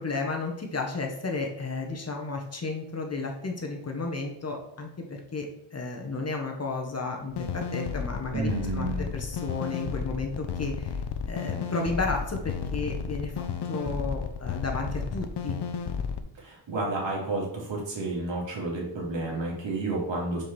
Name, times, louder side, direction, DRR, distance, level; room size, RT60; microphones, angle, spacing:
voice 1, 0.0-11.0 11.3-15.6, left 3 dB, 30° left, 2 dB, 1.4 m, -33 dB
sound 1, 7.3-16.2, left 6 dB, 60° left, 0.8 m, -32 dB
voice 2, 8.3-9.1 16.4-20.4, right 2 dB, 70° right, -2 dB, 2.8 m, -31 dB
5.2 x 4.8 x 6.1 m, 0.77 s
cardioid pair, 110°, 47 cm